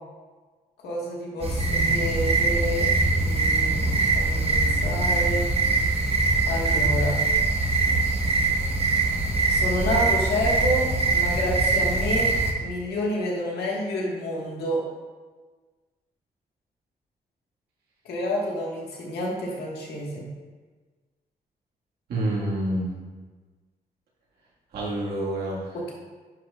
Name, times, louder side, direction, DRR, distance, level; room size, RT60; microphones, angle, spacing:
voice 1, 0.8-2.9 3.2-5.5 6.5-7.2 9.5-12.3 12.6-14.8 18.0-20.3 25.7-25.9, equal, 90° left, -3 dB, 1.7 m, -29 dB
sound 1, 1.4-12.5, right 3 dB, 40° right, 1.3 m, -23 dB
voice 2, 22.1-22.9 24.7-25.8, right 1 dB, 85° right, -4 dB, 1.8 m, -27 dB
10.0 x 5.4 x 2.4 m, 1.4 s
cardioid pair, 70°, 16 cm